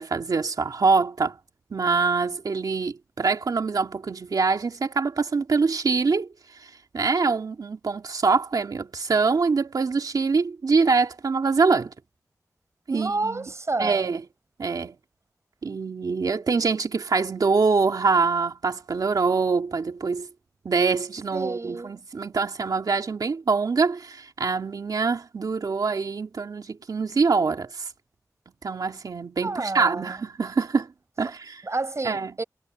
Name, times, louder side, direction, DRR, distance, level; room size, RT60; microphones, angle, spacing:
voice 1, 0.0-1.4 1.7-6.3 6.6-11.9 12.9-13.5 13.8-14.2 14.6-15.0 15.6-20.3 20.6-27.9 28.6-30.9 31.2-31.6 32.0-32.3, right 4 dB, 85° right, 2.4 m, -24 dB
voice 2, 12.9-14.1 21.3-21.9 29.4-30.2 31.6-32.4, right 3 dB, 50° right, 6.5 m, -30 dB
wide cardioid pair, 60°, 6 cm